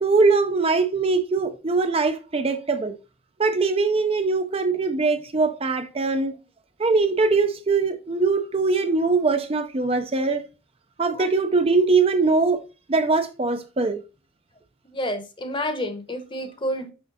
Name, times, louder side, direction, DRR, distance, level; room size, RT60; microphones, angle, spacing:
voice 1, 0.0-3.0 3.4-6.4 6.8-10.5 11.0-12.6 12.9-14.0, right 3 dB, 30° right, 0.5 m, -22 dB
voice 2, 14.9-16.9, equal, 25° left, 1.0 m, -29 dB
6.3 x 5.7 x 3.9 m
head